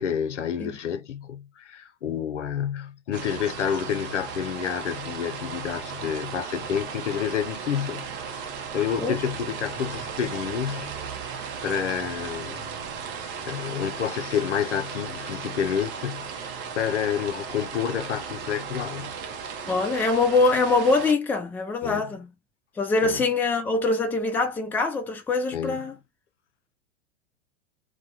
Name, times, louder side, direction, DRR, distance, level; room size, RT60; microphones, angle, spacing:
voice 1, 0.0-10.9 11.6-12.7 13.4-19.1 21.8-22.1 23.0-23.2 25.5-25.8, left 8 dB, 90° left, 0.6 m, -29 dB
sound 1, 3.1-21.1, right 6 dB, 30° right, 0.6 m, -36 dB
voice 2, 19.7-22.3 22.8-26.0, left 3 dB, 5° left, 0.4 m, -23 dB
2.2 x 2.2 x 2.8 m
hypercardioid pair, 100°, 35 cm